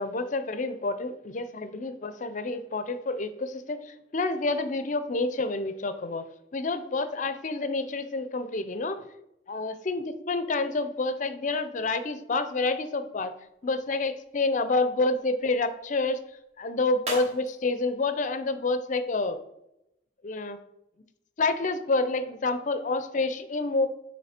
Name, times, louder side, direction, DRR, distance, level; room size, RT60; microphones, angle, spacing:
voice 1, 0.0-3.8 4.1-6.2 6.5-9.0 9.5-13.3 13.6-16.2 16.6-19.4 20.2-20.6 21.4-23.9, left 3 dB, 40° left, 11 dB, 0.5 m, -28 dB
sound 1, 13.4-19.4, right 1 dB, 35° right, 1.2 m, -44 dB
7.5 x 3.2 x 4.3 m, 0.86 s
head